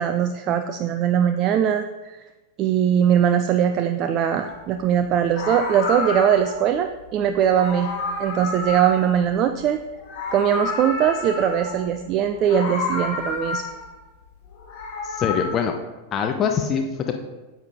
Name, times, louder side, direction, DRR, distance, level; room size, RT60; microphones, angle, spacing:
voice 1, 0.0-2.2 2.6-7.9 8.2-9.8 10.3-13.6, right 9 dB, 35° right, 8 dB, 0.4 m, -21 dB
Meow, 4.4-4.6 5.2-6.7 7.4-9.7 9.9-11.9 12.4-14.0 14.5-15.5, left 3 dB, 45° left, 2.6 m, -30 dB
voice 2, 15.0-15.7 16.1-17.2, left 7 dB, 30° left, 4 dB, 0.6 m, -24 dB
9.5 x 7.5 x 2.6 m, 1.2 s
figure-of-eight pair, 90°, 0 cm